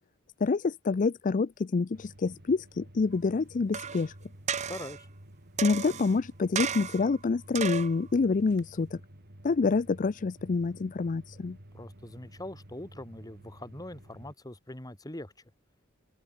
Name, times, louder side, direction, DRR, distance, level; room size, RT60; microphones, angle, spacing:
voice 1, 0.4-4.1 5.6-9.0 9.4-11.6, left 4 dB, 40° left, 0.4 m, -27 dB
sound 1, 1.9-14.3, right 1 dB, 50° right, 3.7 m, -52 dB
sound 2, 3.7-4.1 4.5-5.0 5.6-6.2 6.6-7.1 7.6-8.0 8.6-8.7, right 7 dB, 35° right, 0.7 m, -33 dB
voice 2, 4.7-5.1 11.7-15.3, left 1 dB, 20° left, 2.1 m, -42 dB
open air
head